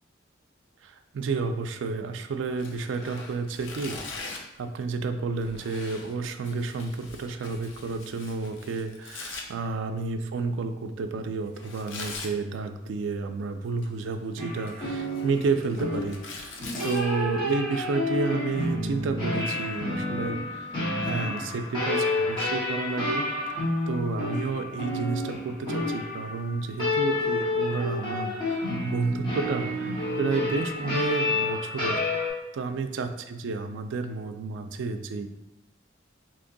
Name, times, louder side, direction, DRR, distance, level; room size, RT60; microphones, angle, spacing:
voice 1, 0.8-35.3, right 4 dB, 70° right, 7 dB, 0.3 m, -31 dB
Tearing, 2.5-4.6 5.4-9.4 11.6-12.3 13.6-14.1 14.5-17.0, left 4 dB, 80° left, 0.5 m, -42 dB
sound 1, 14.4-32.3, left 2 dB, 25° left, 1.4 m, -29 dB
2.9 x 2.6 x 3.8 m, 0.91 s
head